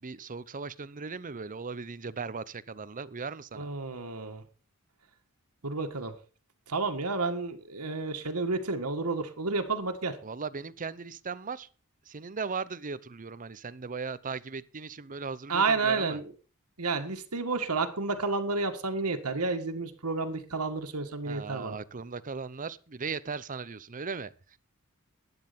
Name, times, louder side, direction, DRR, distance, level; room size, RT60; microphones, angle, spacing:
voice 1, 0.0-3.7 10.2-11.7 12.0-16.2 21.2-24.6, right 5 dB, 35° right, 0.7 m, -38 dB
voice 2, 3.5-4.4 5.6-6.1 6.7-10.2 15.5-16.3 16.8-21.8, right 3 dB, 85° right, 1.8 m, -30 dB
12.0 x 9.8 x 5.3 m
head